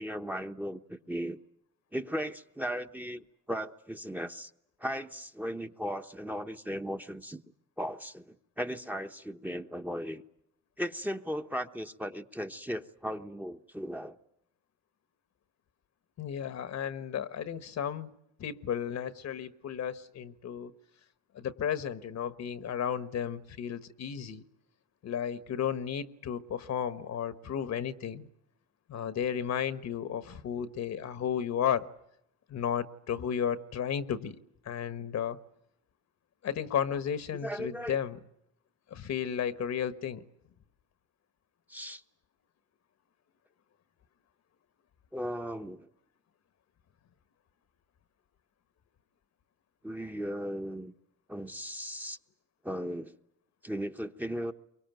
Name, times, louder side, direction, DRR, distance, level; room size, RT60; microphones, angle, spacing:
voice 1, 0.0-1.4 1.9-4.5 4.8-7.4 7.8-10.2 10.8-14.2 37.3-38.0 41.7-42.0 45.1-45.9 49.8-50.9 51.3-52.2 52.6-53.1 53.6-54.5, equal, 5° right, 1.0 m, -37 dB
voice 2, 16.2-18.1 18.4-20.7 21.3-24.4 25.0-28.3 28.9-31.9 32.5-34.4 34.6-35.4 36.4-38.2 38.9-40.2, left 8 dB, 65° left, 1.3 m, -33 dB
24.0 x 23.0 x 9.2 m
cardioid pair, 90°, 30 cm